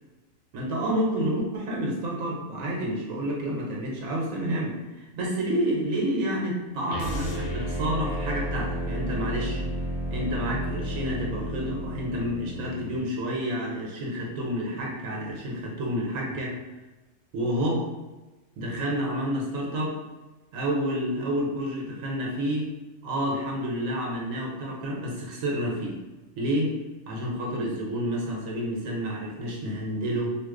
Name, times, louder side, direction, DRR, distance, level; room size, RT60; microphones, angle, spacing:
voice 1, 0.5-9.6 10.1-16.6 17.3-17.9 18.6-20.0 20.5-22.7 23.0-26.0 26.4-26.7 27.1-30.4, equal, 70° right, -2 dB, 1.1 m, -29 dB
sound 1, 6.9-13.0, equal, 85° left, 0.4 m, -32 dB
2.9 x 2.0 x 3.6 m, 1.1 s
omnidirectional pair, 1.5 m